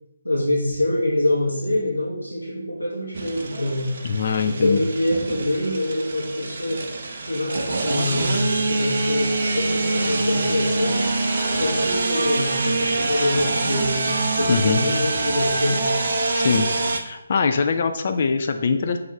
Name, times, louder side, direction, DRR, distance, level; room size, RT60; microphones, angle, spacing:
voice 1, 0.2-4.0 4.4-6.8 7.2-11.0 11.6-15.9, left 1 dB, 90° left, -4 dB, 0.8 m, -25 dB
sound 1, 3.1-17.0, right 2 dB, 45° right, 0.5 m, -25 dB
voice 2, 4.0-4.8 14.5-14.8 16.3-16.7 17.0-19.0, left 5 dB, 40° left, 6 dB, 0.3 m, -22 dB
sound 2, 12.1-15.3, right 2 dB, 5° left, 1.1 m, -40 dB
6.1 x 2.4 x 3.2 m, 0.91 s
figure-of-eight pair, 145°, 0 cm